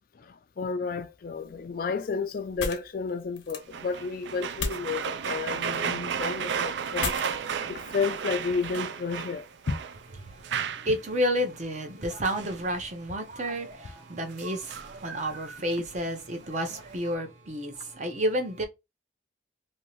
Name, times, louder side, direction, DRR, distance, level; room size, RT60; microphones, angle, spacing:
voice 1, 0.2-7.1 7.7-9.8, left 5 dB, 50° left, 0.4 m, -32 dB
sound 1, 1.4-8.8, left 4 dB, 85° left, 0.8 m, -40 dB
sound 2, 3.7-10.0 10.3-11.0 12.0-12.9 14.3-16.1 16.6-17.1, right 7 dB, 65° right, 0.4 m, -34 dB
voice 2, 10.2-18.6, equal, 40° right, 0.7 m, -31 dB
2.7 x 2.7 x 3.0 m
head